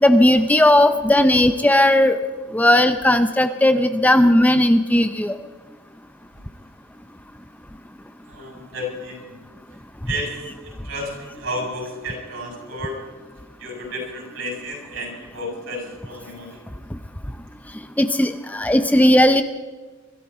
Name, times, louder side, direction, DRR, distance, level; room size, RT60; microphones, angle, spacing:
voice 1, 0.0-2.2 2.5-5.3 18.0-19.4, left 1 dB, 10° left, 9 dB, 0.6 m, -16 dB
voice 2, 8.3-9.4 10.1-10.3 10.6-13.0 13.6-16.6, equal, 70° right, 0 dB, 7.4 m, -32 dB
24.0 x 13.5 x 4.3 m, 1.3 s
head